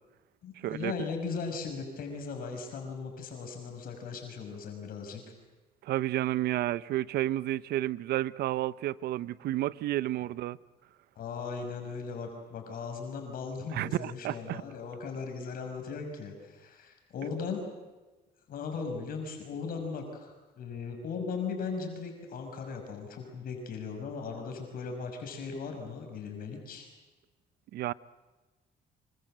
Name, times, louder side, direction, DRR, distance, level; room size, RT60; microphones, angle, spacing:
voice 1, 0.4-5.2 11.2-17.6 18.5-26.9, left 5 dB, 60° left, 6.2 m, -38 dB
voice 2, 5.8-10.6 13.7-14.6 27.7-27.9, right 14 dB, 70° right, 0.8 m, -31 dB
26.5 x 24.0 x 8.0 m
cardioid pair, 110°, 17 cm